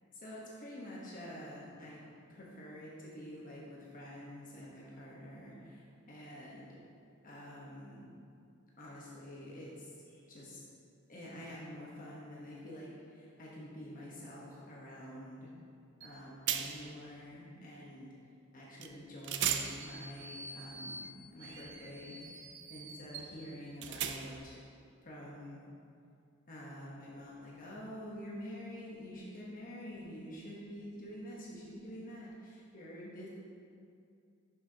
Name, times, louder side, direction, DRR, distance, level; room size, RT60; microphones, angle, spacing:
voice 1, 0.1-6.8 7.2-8.1 8.8-10.6 11.1-15.5 16.0-18.1 18.5-24.6 25.0-25.6 26.5-33.3, equal, 40° left, -5 dB, 1.1 m, -47 dB
sound 1, 16.0-16.1 16.5-17.0 18.8-18.9 19.2-24.5, right 8 dB, 55° right, 0.4 m, -39 dB
10.5 x 6.2 x 2.8 m, 2.4 s
head